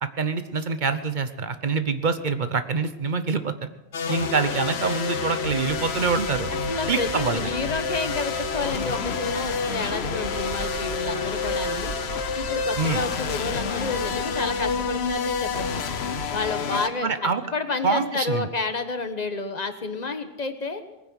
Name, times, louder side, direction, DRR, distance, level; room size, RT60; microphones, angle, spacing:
voice 1, 0.0-3.7 4.1-6.5 6.9-7.4 12.8-13.0 16.7-17.4 17.8-18.5, right 4 dB, 50° right, 10 dB, 1.0 m, -25 dB
sound 1, 3.9-16.9, left 5 dB, 85° left, 1.1 m, -29 dB
sound 2, 5.4-16.5, right 8 dB, 85° right, 1.0 m, -40 dB
voice 2, 6.7-11.9 12.4-15.9 16.3-20.8, left 3 dB, 40° left, 8 dB, 1.3 m, -30 dB
20.0 x 9.6 x 6.3 m, 1.0 s
omnidirectional pair, 1.0 m